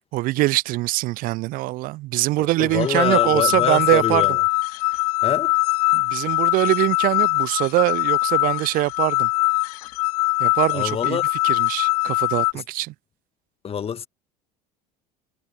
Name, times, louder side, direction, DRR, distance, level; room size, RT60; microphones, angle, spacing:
voice 1, 0.1-4.3 5.9-9.3 10.4-11.2 11.4-12.9, right 19 dB, 45° right, 0.6 m, -23 dB
voice 2, 2.4-4.4 5.2-5.5 10.7-11.3 12.5-12.6 13.6-14.1, left 7 dB, 30° left, 2.2 m, -26 dB
sound 1, 2.7-12.5, left 21 dB, 60° left, 1.1 m, -22 dB
figure-of-eight pair, 70°, 21 cm